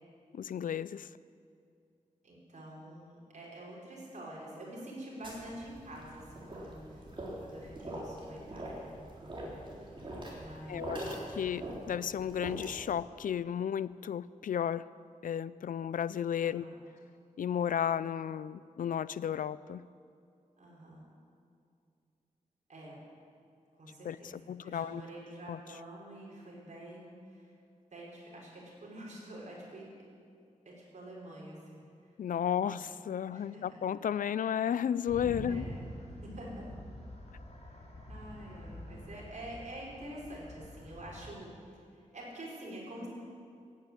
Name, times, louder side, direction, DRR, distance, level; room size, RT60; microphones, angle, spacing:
voice 1, 0.3-1.1 10.7-14.9 15.2-16.6 17.4-19.9 24.0-25.0 25.5-25.6 32.2-35.6, left 9 dB, 80° left, 18 dB, 0.4 m, -33 dB
voice 2, 2.2-7.1 7.4-8.9 10.3-11.1 16.4-16.8 20.6-21.0 22.7-23.0 23.8-27.5 27.9-29.9 30.6-32.2 32.5-32.8 33.3-33.9 35.5-35.9 36.2-36.6 37.3-37.4 38.1-43.1, right 1 dB, 60° right, -4 dB, 5.0 m, -47 dB
sound 1, 5.2-12.9, right 1 dB, 35° right, 3.6 m, -43 dB
sound 2, 35.1-41.3, left 1 dB, 50° left, 3.1 m, -46 dB
15.5 x 9.3 x 8.7 m, 2.4 s
wide cardioid pair, 125°, 14 cm